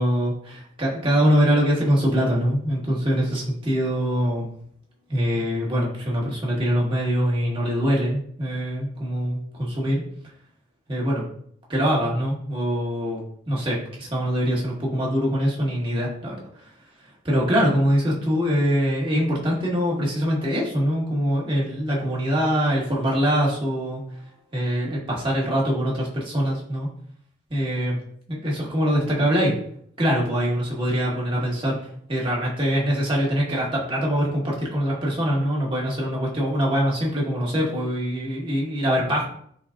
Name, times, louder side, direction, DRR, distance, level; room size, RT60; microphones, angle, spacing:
voice 1, 0.0-4.5 5.1-10.0 10.9-11.2 11.7-13.2 13.5-16.4 17.2-24.0 24.5-26.9 27.5-28.0 28.3-29.5 30.0-31.8 32.1-39.3, equal, 25° right, -5 dB, 1.9 m, -23 dB
10.5 x 4.1 x 2.6 m, 0.65 s
head